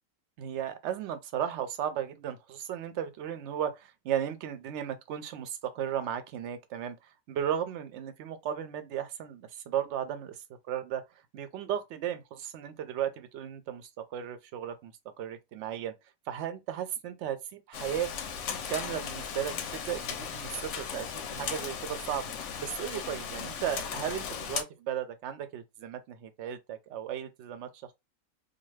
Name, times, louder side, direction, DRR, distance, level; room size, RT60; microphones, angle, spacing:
voice 1, 0.4-11.0 11.3-14.9 15.2-15.9 16.3-18.1 18.7-22.3 22.6-27.7, right 9 dB, 65° right, 0.7 m, -35 dB
Rain, 17.7-24.6, left 7 dB, 65° left, 0.8 m, -37 dB
2.5 x 2.3 x 3.1 m
omnidirectional pair, 1.6 m